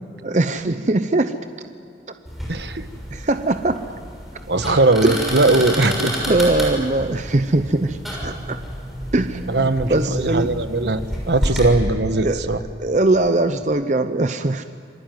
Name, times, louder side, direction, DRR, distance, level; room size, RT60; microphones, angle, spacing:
voice 1, 0.2-1.3 3.1-3.9 5.0-5.3 6.3-8.6 9.1-10.5 12.2-14.6, right 2 dB, 40° right, 9 dB, 0.7 m, -21 dB
sound 1, 2.2-11.7, equal, ahead, 6.5 m, -30 dB
voice 2, 2.5-2.9 4.5-6.3 9.5-12.6, right 2 dB, 70° right, 10 dB, 1.3 m, -19 dB
27.0 x 23.5 x 9.3 m, 2.6 s
head